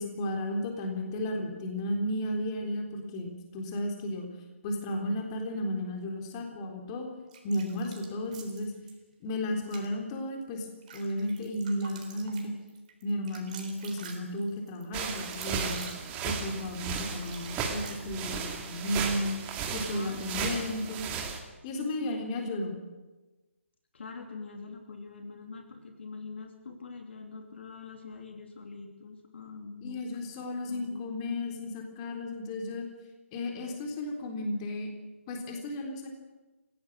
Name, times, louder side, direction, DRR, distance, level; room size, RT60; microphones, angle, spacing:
voice 1, 0.0-4.3 4.6-7.1 7.4-8.7 9.2-10.7 10.9-12.5 13.0-15.9 16.2-19.4 19.7-21.1 21.6-22.8 29.8-32.9 33.3-34.9 35.3-36.1, left 1 dB, 25° left, 2 dB, 3.7 m, -33 dB
sound 1, 7.3-8.9 9.6-9.9 10.4-18.4, right 6 dB, 35° right, 4.0 m, -48 dB
sound 2, 14.9-21.4, right 6 dB, 20° right, 2.5 m, -35 dB
voice 2, 19.9-20.8 21.7-22.4 23.9-30.3 30.7-31.0, left 4 dB, 55° left, 4 dB, 3.1 m, -44 dB
28.5 x 17.0 x 6.3 m, 1.2 s
figure-of-eight pair, 145°, 7 cm